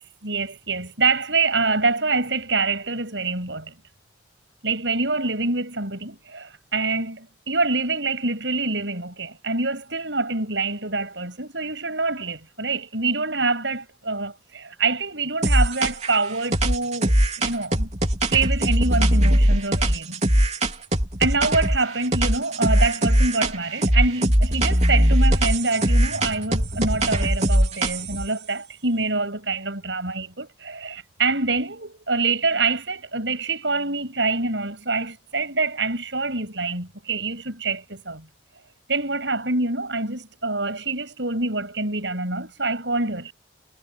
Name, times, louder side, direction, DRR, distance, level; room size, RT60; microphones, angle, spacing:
voice 1, 0.2-3.7 4.6-17.9 18.3-20.2 21.2-38.2 38.9-43.3, right 3 dB, 75° right, 7.9 m, -25 dB
sound 1, 15.4-16.2 16.5-21.8 22.1-23.6 23.8-28.3, right 1 dB, 35° right, 3.4 m, -20 dB
head